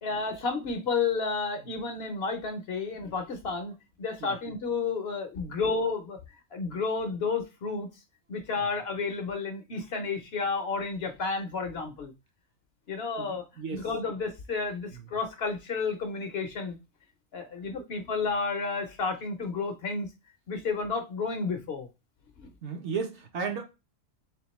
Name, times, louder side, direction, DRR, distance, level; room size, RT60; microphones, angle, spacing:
voice 1, 0.0-3.7 4.0-6.2 6.5-7.9 8.3-12.1 12.9-13.4 13.7-16.8 17.3-20.1 20.5-21.9 22.4-22.5, left 4 dB, 60° left, 0.8 m, -31 dB
voice 2, 13.2-14.2 14.9-15.1 22.6-23.6, right 5 dB, 60° right, 1.1 m, -35 dB
3.5 x 3.5 x 3.0 m
omnidirectional pair, 1.4 m